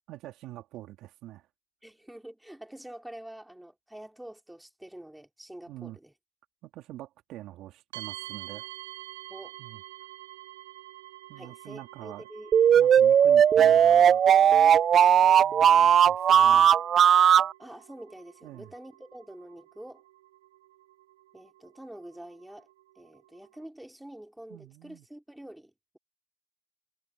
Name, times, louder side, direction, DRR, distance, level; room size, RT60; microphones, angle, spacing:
voice 1, 0.1-1.5 5.7-6.0 6.6-8.7 9.6-9.8 11.3-12.3 12.7-14.2 15.2-16.7 18.4-18.7 24.5-25.0, right 15 dB, 50° right, 2.5 m, -45 dB
voice 2, 1.8-6.1 9.3-9.6 11.4-12.5 17.6-20.0 21.3-22.7 23.0-26.0, right 1 dB, 5° right, 3.7 m, -46 dB
sound 1, 7.9-23.6, right 16 dB, 85° right, 8.0 m, -48 dB
sound 2, 12.5-17.5, right 9 dB, 35° right, 0.3 m, -18 dB
supercardioid pair, 115°, 0 cm